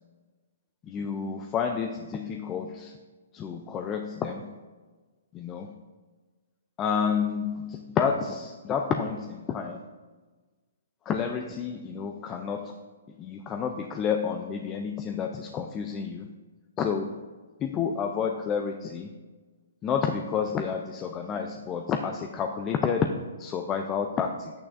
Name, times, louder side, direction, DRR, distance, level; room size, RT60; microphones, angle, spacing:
voice 1, 0.9-3.0 3.3-4.5 5.3-5.7 6.8-9.8 11.1-12.7 13.2-16.3 16.8-17.2 17.6-19.1 19.8-24.5, left 6 dB, 15° left, 4 dB, 0.3 m, -30 dB
10.5 x 8.6 x 2.5 m, 1.3 s
hypercardioid pair, 170°, 0 cm